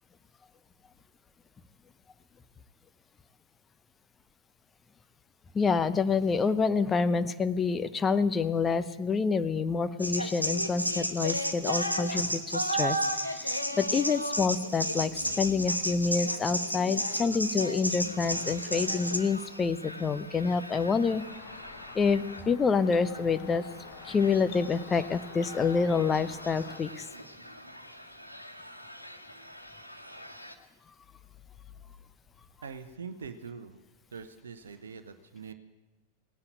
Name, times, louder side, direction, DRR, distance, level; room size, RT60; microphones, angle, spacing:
voice 1, 5.5-13.0 13.3-21.2 21.9-23.6 24.0-27.1, left 5 dB, 20° left, 11 dB, 0.8 m, -27 dB
sound 1, 10.0-19.2, equal, 90° left, 1.2 m, -31 dB
sound 2, 18.0-30.5, equal, 90° right, 1.3 m, -47 dB
sound 3, 21.1-26.8, left 7 dB, 45° left, 1.6 m, -48 dB
voice 2, 32.6-33.8 34.1-35.5, right 5 dB, 70° right, 9 dB, 0.9 m, -43 dB
18.0 x 9.7 x 8.3 m, 1.1 s
figure-of-eight pair, 90°, 0 cm